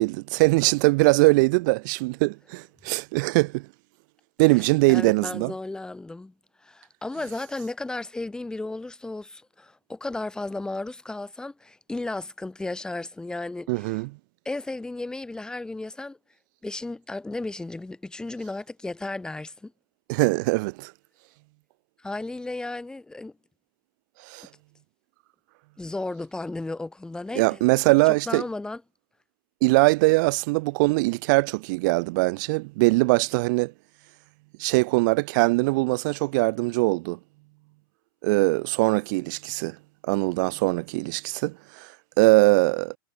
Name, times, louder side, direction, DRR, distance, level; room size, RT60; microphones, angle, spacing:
voice 1, 0.0-3.6 4.4-5.5 13.7-14.1 20.1-20.9 24.3-24.5 27.4-28.4 29.6-33.7 34.6-37.2 38.2-39.8 40.0-41.9 42.2-43.0, right 25 dB, 55° right, 0.4 m, -22 dB
voice 2, 4.9-6.3 6.6-14.0 14.5-16.2 16.6-19.7 22.0-23.3 25.8-27.6 28.0-28.8, left 2 dB, 5° left, 4.0 m, -34 dB
supercardioid pair, 145°, 13 cm